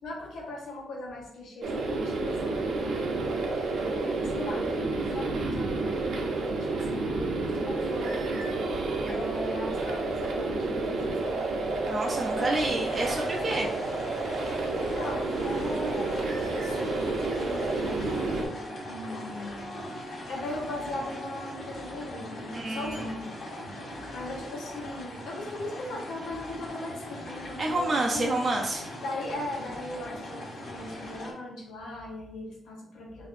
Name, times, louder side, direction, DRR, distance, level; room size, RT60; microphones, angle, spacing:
voice 1, 0.0-6.3 6.6-11.7 12.1-12.7 14.6-19.7 20.3-28.4 29.0-33.3, left 2 dB, 90° left, -2 dB, 0.9 m, -39 dB
sound 1, 1.6-18.5, right 3 dB, 80° right, 0.6 m, -30 dB
voice 2, 11.9-13.7 22.5-23.2 27.6-28.9, right 2 dB, 35° right, -1 dB, 0.5 m, -29 dB
sound 2, 12.6-31.3, left 1 dB, 55° left, 1.1 m, -40 dB
Wind instrument woodwind instrument, 18.0-22.3, equal, 30° left, 0.5 m, -46 dB
4.4 x 2.6 x 2.5 m, 0.74 s
cardioid pair, 110°, 0 cm